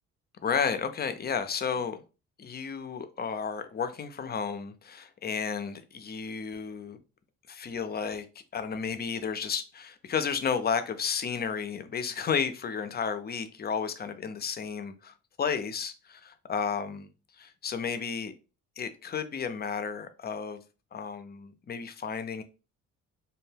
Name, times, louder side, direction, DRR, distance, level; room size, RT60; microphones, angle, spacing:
voice 1, 0.4-2.0 2.4-7.0 7.5-8.3 8.5-17.1 17.4-18.3 18.8-20.6 20.9-22.4, left 6 dB, 35° left, 0.4 m, -32 dB
2.6 x 2.2 x 3.2 m
cardioid pair, 90°, 30 cm